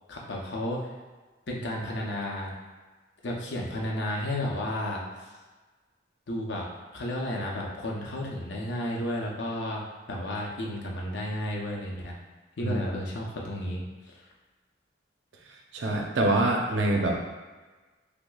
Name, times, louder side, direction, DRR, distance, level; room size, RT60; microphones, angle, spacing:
voice 1, 0.1-0.8 1.5-2.5 3.2-5.0 6.3-6.6 6.9-9.8 10.1-12.1 12.6-14.2, left 1 dB, 70° left, -2 dB, 0.7 m, -32 dB
voice 2, 15.7-17.3, right 2 dB, 90° right, 1 dB, 0.6 m, -25 dB
5.9 x 2.1 x 2.3 m, 1.3 s
head